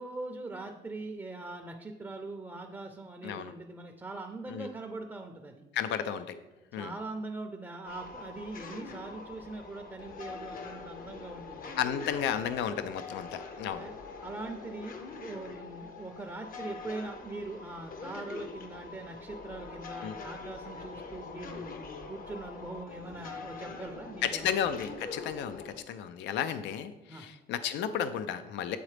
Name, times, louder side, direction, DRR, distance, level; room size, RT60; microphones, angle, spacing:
voice 1, 0.0-5.6 6.7-11.8 13.8-13.9 14.2-24.5 27.1-27.3, right 2 dB, 10° right, 3 dB, 0.5 m, -42 dB
voice 2, 5.7-6.4 6.7-6.9 11.8-13.9 20.0-20.1 24.2-28.8, left 9 dB, 70° left, 11 dB, 0.4 m, -33 dB
sound 1, 7.8-25.8, left 4 dB, 50° left, 0.8 m, -44 dB
8.5 x 3.9 x 3.3 m, 1.1 s
cardioid pair, 105°, 19 cm